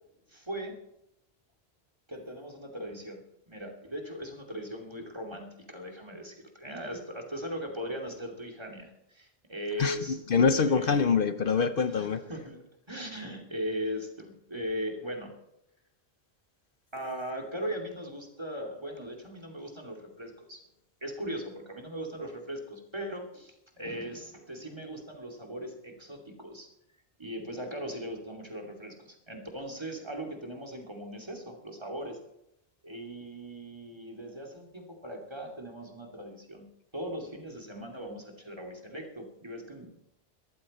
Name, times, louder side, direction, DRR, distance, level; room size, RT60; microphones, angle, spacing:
voice 1, 0.3-0.8 2.1-10.2 10.5-11.0 11.9-15.3 16.9-20.6 21.0-26.7 27.2-32.2 32.8-36.7 36.9-39.9, equal, 25° right, 2.7 m, -39 dB
voice 2, 9.8-12.2, left 5 dB, 60° left, 0.9 m, -25 dB
22.0 x 14.5 x 4.3 m
omnidirectional pair, 1.1 m